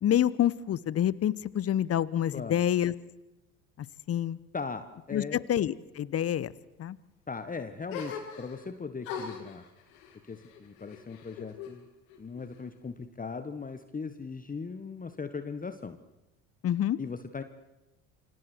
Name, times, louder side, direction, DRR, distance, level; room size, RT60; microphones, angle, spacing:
voice 1, 0.0-2.9 3.8-4.4 5.1-6.5 6.8-7.0 16.6-17.0, left 11 dB, 35° left, 21 dB, 1.0 m, -27 dB
voice 2, 4.5-5.4 7.3-9.6 10.3-11.8 12.2-16.0 17.0-17.4, left 5 dB, 20° left, 10 dB, 1.5 m, -38 dB
sound 1, 7.9-8.7 9.0-11.8 12.1-12.9, left 6 dB, 70° left, 6.0 m, -42 dB
29.0 x 25.5 x 4.6 m, 0.97 s
figure-of-eight pair, 65°, 42 cm